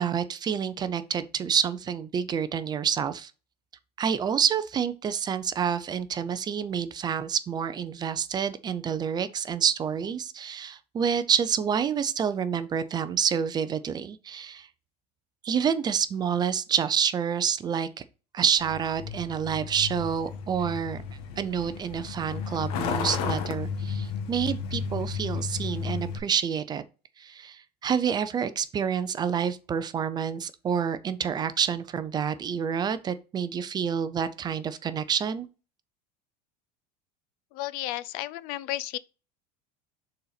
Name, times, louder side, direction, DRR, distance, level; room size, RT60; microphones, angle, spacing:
voice 1, 0.0-3.3 4.0-14.7 15.4-17.9 18.3-21.0 21.4-26.8 27.2-35.5, right 7 dB, 20° right, 0.5 m, -28 dB
Truck, 18.6-26.2, left 6 dB, 65° left, 1.4 m, -33 dB
voice 2, 37.5-39.0, left 15 dB, 45° left, 0.4 m, -33 dB
6.7 x 4.3 x 4.0 m
supercardioid pair, 155°, 21 cm